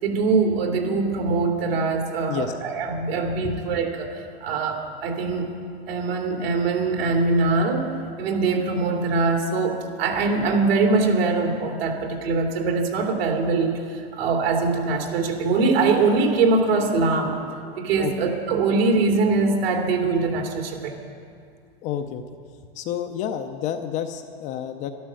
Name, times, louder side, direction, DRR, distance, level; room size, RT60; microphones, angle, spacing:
voice 1, 0.0-5.5 5.9-7.9 8.2-17.3 17.8-21.0, right 3 dB, 65° right, 1 dB, 2.9 m, -22 dB
voice 2, 17.6-18.1 21.8-22.2 22.7-24.9, left 9 dB, 25° left, 6 dB, 0.5 m, -30 dB
12.5 x 12.5 x 7.5 m, 2.3 s
supercardioid pair, 150°, 32 cm